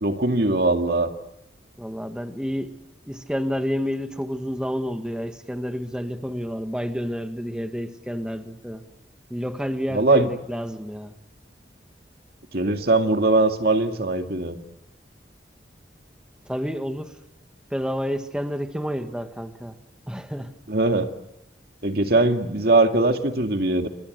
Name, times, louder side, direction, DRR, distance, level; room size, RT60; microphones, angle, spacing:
voice 1, 0.0-1.1 9.9-10.3 12.5-14.6 20.7-21.1 21.8-23.9, right 2 dB, 60° right, 2.2 m, -21 dB
voice 2, 1.8-2.7 3.1-8.8 9.3-11.1 16.5-17.1 17.7-19.8 20.1-20.5, equal, 5° right, 1.7 m, -29 dB
29.5 x 25.0 x 8.0 m
head